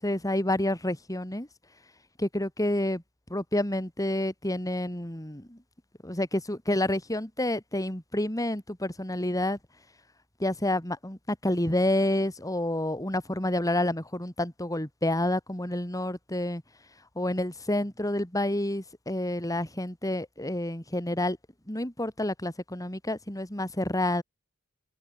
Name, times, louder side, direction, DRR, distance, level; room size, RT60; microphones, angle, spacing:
voice 1, 0.0-1.5 2.2-3.0 3.3-5.6 6.0-9.6 10.4-16.6 17.2-21.4 21.7-24.2, left 1 dB, 15° left, 3.5 m, -29 dB
open air
head